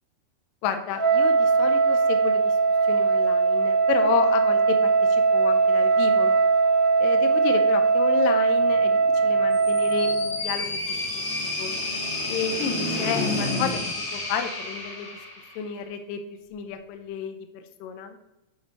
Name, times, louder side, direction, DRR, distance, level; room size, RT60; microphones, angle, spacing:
voice 1, 0.6-2.6 2.9-6.3 7.0-10.7 11.4-11.8 12.3-13.8 14.1-15.1 15.6-16.2 16.5-18.2, left 8 dB, 80° left, 7 dB, 2.1 m, -31 dB
Wind instrument woodwind instrument, 0.9-10.3, right 4 dB, 50° right, 3.1 m, -20 dB
sound 1, 8.6-14.1, left 1 dB, 70° right, 0.6 m, -34 dB
sound 2, 9.5-15.7, left 2 dB, 45° left, 1.5 m, -32 dB
8.6 x 6.2 x 2.7 m, 0.96 s
omnidirectional pair, 4.3 m